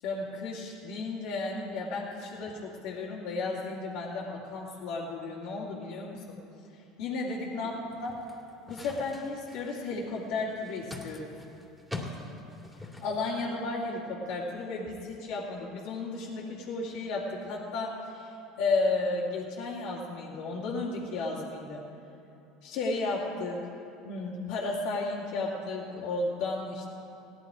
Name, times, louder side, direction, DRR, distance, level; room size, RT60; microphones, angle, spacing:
voice 1, 0.0-6.4 6.7-8.1 8.7-11.3 13.0-18.3 18.6-21.8 22.6-23.6 24.0-26.9, left 3 dB, 65° left, -7 dB, 2.4 m, -33 dB
sound 1, 7.9-13.2, left 2 dB, 5° right, 2.5 m, -44 dB
17.0 x 11.0 x 4.9 m, 3.0 s
hypercardioid pair, 80°, 0 cm